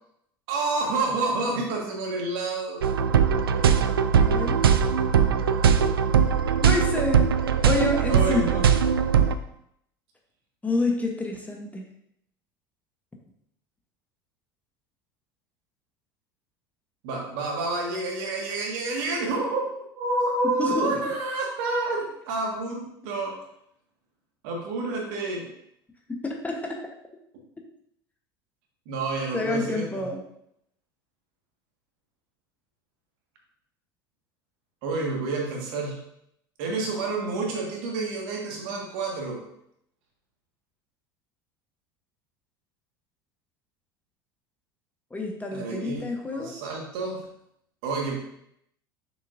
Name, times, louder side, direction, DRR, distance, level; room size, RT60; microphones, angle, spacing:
voice 1, 0.5-2.8 8.1-8.7 17.0-23.3 24.4-25.5 28.8-30.1 34.8-36.0 36.6-39.4 45.5-47.2 47.8-48.2, right 3 dB, 55° right, 1 dB, 1.6 m, -29 dB
sound 1, 2.8-9.3, right 7 dB, 75° right, 0.4 m, -21 dB
voice 2, 4.2-4.6 6.6-7.3 7.6-8.6 10.6-11.8 20.6-21.1 26.1-26.8 29.3-30.2 45.1-46.5, left 2 dB, 10° left, 1 dB, 1.0 m, -28 dB
6.4 x 5.8 x 2.6 m, 0.75 s
figure-of-eight pair, 70°, 12 cm